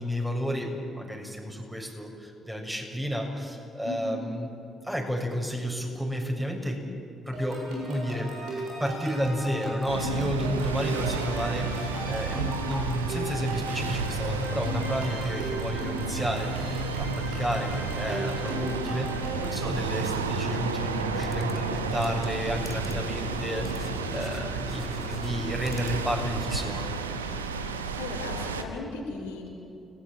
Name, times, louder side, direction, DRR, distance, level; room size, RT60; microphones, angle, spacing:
voice 1, 0.0-4.5 4.8-6.8 7.3-8.3 8.8-26.9, equal, 10° right, 1 dB, 7.1 m, -31 dB
voice 2, 3.8-4.2 28.0-29.5, left 2 dB, 80° left, 0 dB, 4.2 m, -36 dB
sound 1, 7.3-19.6, equal, 70° right, 7.1 m, -36 dB
sound 2, 9.9-28.6, right 4 dB, 90° right, 1.1 m, -32 dB
sound 3, 21.1-26.4, left 2 dB, 25° left, 1.9 m, -39 dB
30.0 x 19.0 x 8.8 m, 2.7 s
hypercardioid pair, 40°, 0 cm